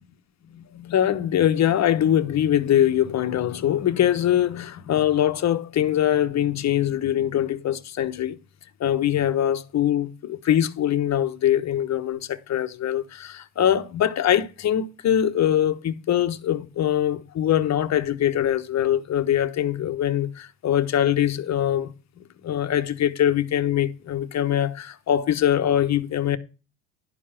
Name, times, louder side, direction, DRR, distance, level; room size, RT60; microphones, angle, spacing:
voice 1, 0.5-8.4 8.8-26.4, left 11 dB, 40° left, 1.1 m, -23 dB
11.5 x 4.7 x 5.7 m
supercardioid pair, 85°, 43 cm